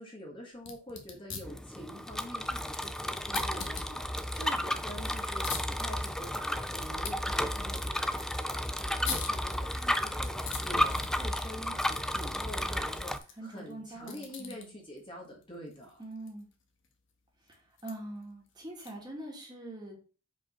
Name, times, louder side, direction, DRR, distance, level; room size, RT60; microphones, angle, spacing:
voice 1, 0.0-10.3 10.6-16.0, equal, 25° left, -1 dB, 1.6 m, -46 dB
sound 1, 0.5-19.2, left 6 dB, 60° left, 1.4 m, -46 dB
Bicycle, 1.4-13.2, left 1 dB, 5° left, 0.3 m, -33 dB
voice 2, 13.4-14.7 16.0-16.5 17.4-20.0, right 1 dB, 20° right, -1 dB, 2.2 m, -44 dB
5.4 x 5.0 x 5.5 m, 0.37 s
head